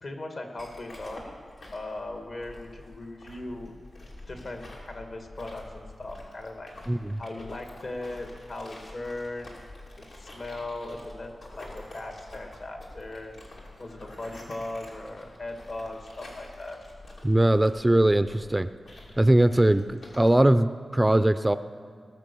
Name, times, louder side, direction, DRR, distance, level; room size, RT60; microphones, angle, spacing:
voice 1, 0.0-1.4 1.7-3.8 4.3-6.7 7.2-9.6 10.0-13.4 13.8-16.8, left 2 dB, 60° left, 4 dB, 1.8 m, -38 dB
sound 1, 0.6-20.3, left 2 dB, 75° left, 2.9 m, -47 dB
voice 2, 6.9-7.2 17.2-18.7 19.2-21.6, right 1 dB, 15° right, 12 dB, 0.4 m, -21 dB
19.0 x 6.7 x 6.9 m, 2.2 s
wide cardioid pair, 85°, 0 cm